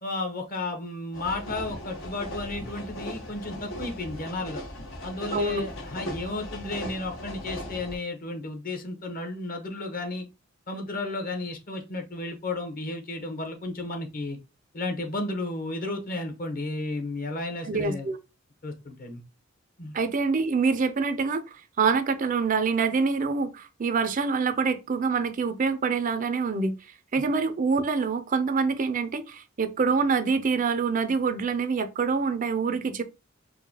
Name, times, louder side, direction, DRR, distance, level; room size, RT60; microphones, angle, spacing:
voice 1, 0.0-4.6 5.0-10.3 10.7-14.4 14.7-18.1 18.6-19.2 19.8-19.9 27.1-27.2, left 2 dB, 45° left, 1.0 m, -33 dB
sound 1, 1.1-7.9, left 1 dB, 80° left, 1.1 m, -38 dB
voice 2, 5.3-5.7 17.6-18.2 19.9-26.7 27.1-33.0, right 4 dB, 40° right, 0.4 m, -26 dB
4.6 x 2.2 x 2.8 m
head